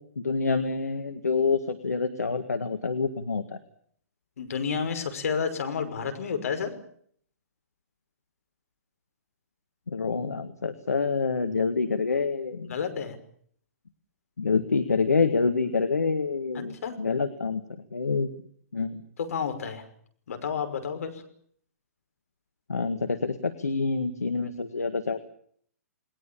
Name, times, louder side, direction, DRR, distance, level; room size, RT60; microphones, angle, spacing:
voice 1, 0.2-3.4 9.9-12.7 14.4-17.6 17.9-18.3 18.7-19.0 22.7-25.2, left 4 dB, 80° left, 8 dB, 1.9 m, -27 dB
voice 2, 4.4-6.7 12.7-13.2 16.8-16.9 19.2-19.8 20.3-21.2, left 6 dB, 65° left, 6 dB, 5.7 m, -30 dB
30.0 x 20.5 x 7.2 m, 0.62 s
figure-of-eight pair, 120°, 8 cm